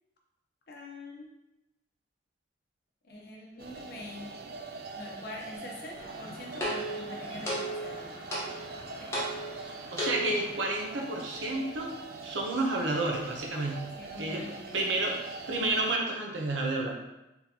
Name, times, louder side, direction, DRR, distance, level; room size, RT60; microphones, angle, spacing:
voice 1, 0.7-1.3 3.0-4.5 5.0-8.3 9.0-9.1 14.0-15.1, left 1 dB, 55° left, -1 dB, 0.8 m, -44 dB
sound 1, 3.6-16.0, right 3 dB, 55° right, 0.4 m, -43 dB
sound 2, 6.0-10.5, right 1 dB, 15° left, 1.1 m, -36 dB
voice 2, 9.9-11.9 12.2-13.9 14.2-14.4 14.7-16.9, right 2 dB, 70° right, 0 dB, 0.9 m, -30 dB
4.2 x 3.9 x 2.9 m, 0.95 s
head